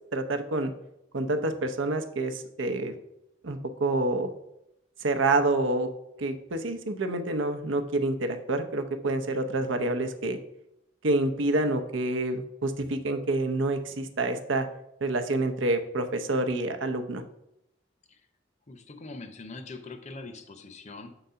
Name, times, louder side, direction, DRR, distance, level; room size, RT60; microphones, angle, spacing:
voice 1, 0.1-0.7 1.1-2.9 3.4-4.3 5.0-5.9 6.2-10.4 11.0-14.7 15.0-17.2, right 2 dB, 80° right, 7 dB, 0.7 m, -27 dB
voice 2, 18.7-21.2, left 3 dB, 35° left, 8 dB, 0.7 m, -43 dB
6.6 x 3.9 x 5.6 m, 0.82 s
head